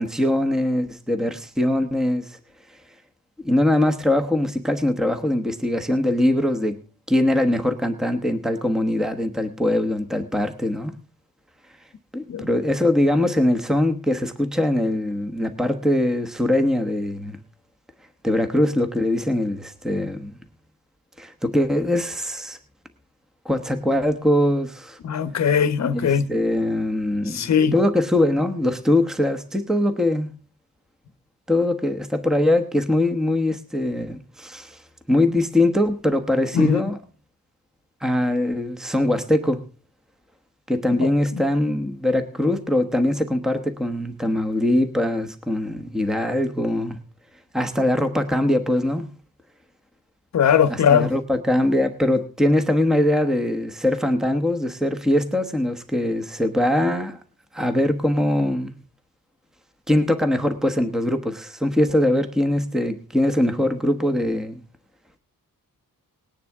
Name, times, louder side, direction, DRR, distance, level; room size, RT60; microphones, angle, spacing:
voice 1, 0.0-2.4 3.4-6.8 7.1-10.9 12.1-17.4 18.2-20.4 21.2-22.6 23.4-25.0 25.9-30.3 31.5-34.8 35.1-37.0 38.0-39.6 40.7-47.0 47.5-49.0 50.7-57.2 57.5-58.7 59.9-64.6, left 1 dB, ahead, 1.1 m, -22 dB
voice 2, 25.0-26.3 27.3-27.7 36.5-36.8 41.0-41.4 50.3-51.1, left 7 dB, 50° left, 1.0 m, -20 dB
19.0 x 10.0 x 3.5 m
wide cardioid pair, 155°, 35 cm